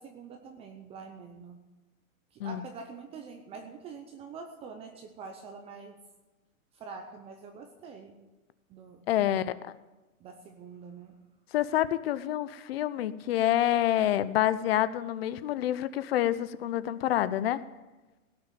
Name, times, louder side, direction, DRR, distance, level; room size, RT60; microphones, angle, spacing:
voice 1, 0.0-1.6 2.3-6.0 6.7-8.2 8.7-9.5 10.2-11.2, right 5 dB, 15° right, 5 dB, 0.7 m, -45 dB
voice 2, 9.1-9.5 11.5-17.6, left 12 dB, 45° left, 16 dB, 0.7 m, -27 dB
17.0 x 6.5 x 9.1 m, 1.1 s
hypercardioid pair, 150°, 43 cm